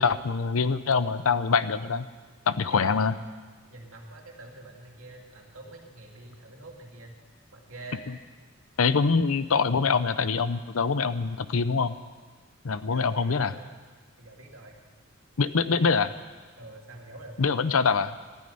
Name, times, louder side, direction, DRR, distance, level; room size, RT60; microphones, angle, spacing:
voice 1, 0.0-2.1 2.5-3.1 8.8-12.0 12.6-13.5 15.4-16.1 17.4-18.1, left 5 dB, 85° left, 14 dB, 0.7 m, -24 dB
voice 2, 2.6-3.0 3.7-7.2 7.5-8.2 12.9-13.7 14.2-14.8 15.6-16.1 16.6-17.4, right 2 dB, 75° right, 0 dB, 2.6 m, -46 dB
13.0 x 9.5 x 10.0 m, 1.4 s
head